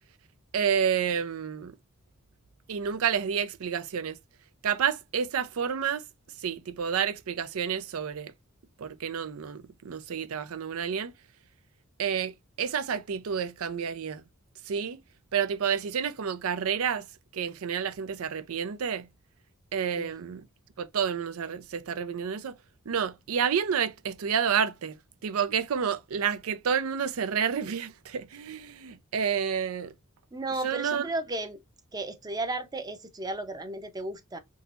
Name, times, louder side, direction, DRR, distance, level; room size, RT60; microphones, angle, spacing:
voice 1, 0.5-1.8 2.7-4.2 4.6-6.0 6.4-8.3 8.8-11.1 12.0-14.2 14.7-15.0 15.3-17.1 17.3-19.1 19.7-20.5 20.8-22.6 22.9-25.0 25.2-29.9 30.6-31.1, right 7 dB, 90° right, 0.5 m, -29 dB
voice 2, 30.3-31.6 31.9-34.4, right 2 dB, 20° right, 0.6 m, -34 dB
3.8 x 2.8 x 2.4 m
head